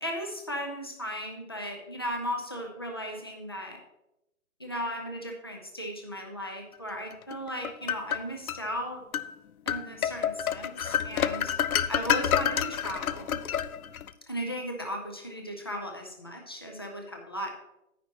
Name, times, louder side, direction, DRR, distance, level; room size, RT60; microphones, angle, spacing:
voice 1, 0.0-3.8 4.6-9.0 9.7-11.5 11.9-13.4 14.3-17.5, equal, 20° left, 2 dB, 0.5 m, -36 dB
sound 1, 7.3-8.6 9.1-9.3 9.7-14.1, left 9 dB, 80° left, 0.6 m, -29 dB
10.0 x 9.7 x 2.9 m, 0.90 s
hypercardioid pair, 165°, 42 cm